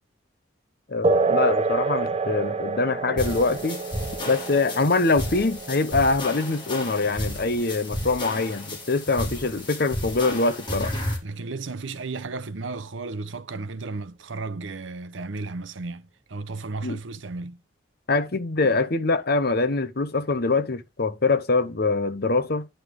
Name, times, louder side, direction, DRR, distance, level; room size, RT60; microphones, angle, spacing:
voice 1, 0.9-3.8 4.2-10.9 16.8-17.0 18.1-22.7, left 3 dB, 55° left, 1.0 m, -24 dB
sound 1, 1.0-9.0, right 3 dB, 30° right, 0.7 m, -28 dB
sound 2, 3.2-11.2, left 1 dB, 25° left, 3.0 m, -33 dB
voice 2, 11.2-17.6, right 3 dB, 75° right, 0.8 m, -34 dB
10.5 x 4.9 x 3.7 m
head